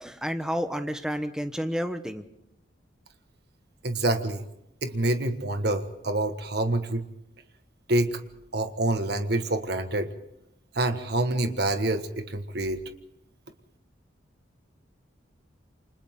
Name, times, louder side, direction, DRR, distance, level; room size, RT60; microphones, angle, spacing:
voice 1, 0.0-2.2, equal, 5° right, 8 dB, 1.1 m, -30 dB
voice 2, 3.8-4.4 4.8-7.1 7.9-8.2 8.5-10.1 10.7-12.8, right 1 dB, 55° right, 8 dB, 1.6 m, -27 dB
28.5 x 25.5 x 3.8 m, 0.84 s
head